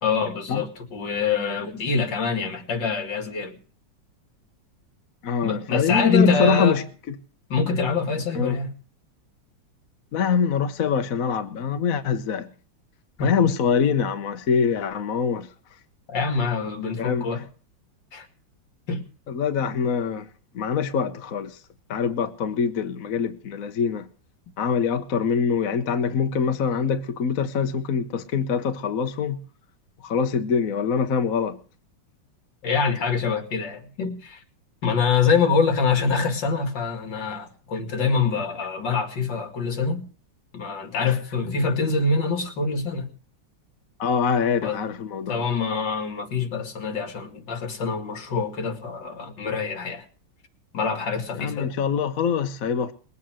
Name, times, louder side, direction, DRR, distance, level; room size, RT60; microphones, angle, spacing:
voice 1, 0.0-3.6 5.4-6.8 7.5-8.7 13.2-13.5 16.1-17.4 18.1-18.3 18.9-19.0 32.6-34.4 34.8-40.0 40.5-43.1 44.6-44.8 45.3-50.0 50.7-51.7, left 5 dB, 70° left, 2.8 m, -25 dB
voice 2, 5.2-6.8 8.3-8.5 10.1-12.5 13.2-15.5 17.0-17.3 19.3-20.3 20.5-21.6 21.9-24.1 24.6-29.4 30.0-31.6 41.0-41.1 44.0-45.4 51.3-52.9, left 6 dB, 55° left, 1.2 m, -24 dB
20.5 x 8.5 x 7.5 m
omnidirectional pair, 2.0 m